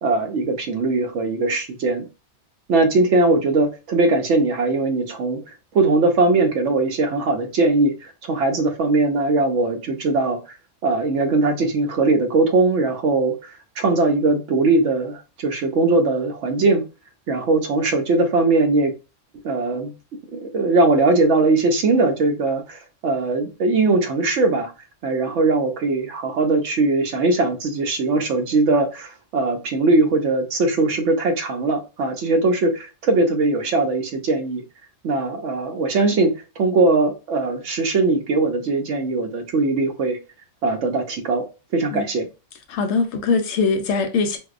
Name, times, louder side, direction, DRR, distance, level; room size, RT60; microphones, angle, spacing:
voice 1, 0.0-2.1 2.7-5.4 5.7-10.4 10.8-13.5 13.8-16.8 17.3-18.9 19.4-19.9 20.3-24.7 25.0-34.6 35.0-40.2 40.6-41.4 41.7-42.3, right 3 dB, 80° right, 1.0 m, -20 dB
voice 2, 42.7-44.4, left 4 dB, 75° left, 0.9 m, -21 dB
4.5 x 2.1 x 2.4 m
omnidirectional pair, 1.2 m